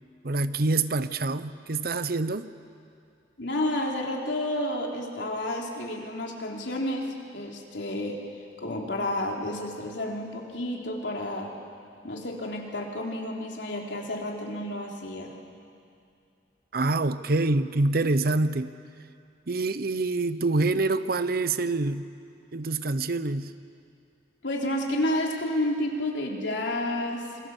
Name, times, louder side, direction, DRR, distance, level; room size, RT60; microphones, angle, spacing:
voice 1, 0.2-2.5 16.7-18.7 19.5-22.1 22.5-23.5, right 2 dB, 55° right, 13 dB, 0.8 m, -26 dB
voice 2, 3.4-8.2 8.6-11.6 12.0-15.3 24.4-27.3, left 1 dB, 85° left, 0 dB, 3.4 m, -30 dB
27.0 x 22.0 x 7.2 m, 2.4 s
head